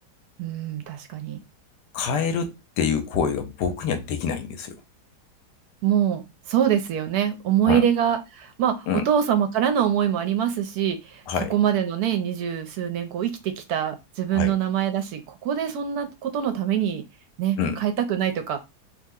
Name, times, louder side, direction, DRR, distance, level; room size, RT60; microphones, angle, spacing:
voice 1, 0.4-1.4 5.8-11.2 11.5-17.0 17.4-18.6, right 9 dB, 75° right, 1.1 m, -24 dB
voice 2, 1.9-4.8 7.6-7.8 8.9-9.1 11.3-11.5 14.3-14.5 17.6-17.8, left 6 dB, 85° left, 1.2 m, -26 dB
2.9 x 2.0 x 3.5 m
omnidirectional pair, 1.8 m